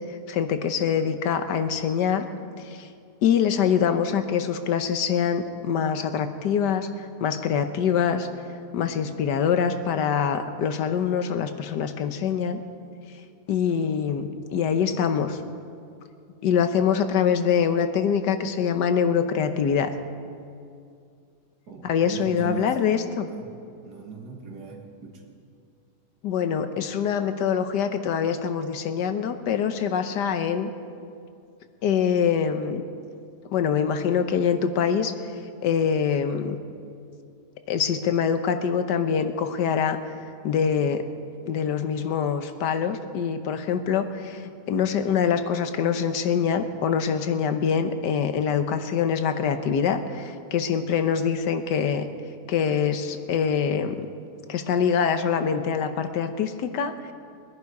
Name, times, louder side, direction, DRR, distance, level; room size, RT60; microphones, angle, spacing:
voice 1, 0.1-2.2 2.6-2.9 3.2-8.3 8.7-12.6 13.5-15.4 16.4-19.9 21.8-23.3 26.2-30.7 31.8-32.8 33.5-35.1 35.6-36.6 37.7-40.0 40.4-41.1 41.5-52.1 52.5-54.1 54.5-57.1, left 7 dB, 85° left, 9 dB, 1.5 m, -24 dB
voice 2, 21.7-22.8 23.2-23.5 23.8-25.2, right 7 dB, 75° right, 1 dB, 2.5 m, -39 dB
22.0 x 10.5 x 4.8 m, 2.4 s
omnidirectional pair, 1.8 m